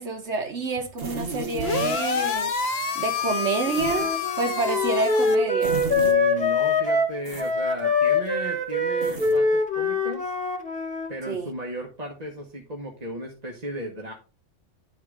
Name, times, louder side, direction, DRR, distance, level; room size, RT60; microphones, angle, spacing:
voice 1, 0.0-2.5 2.9-5.8 11.3-11.5, right 3 dB, 70° right, 1.5 m, -28 dB
sound 1, 1.0-2.0 3.7-4.1 5.6-6.2 7.2-7.5 9.0-9.4, right 3 dB, 55° right, 1.3 m, -33 dB
sound 2, 1.6-5.4, left 5 dB, 60° left, 1.1 m, -28 dB
Wind instrument woodwind instrument, 3.8-11.1, left 3 dB, 5° left, 1.5 m, -24 dB
voice 2, 5.6-10.4 11.1-14.1, equal, 35° right, 1.2 m, -35 dB
11.0 x 3.7 x 4.7 m
omnidirectional pair, 1.3 m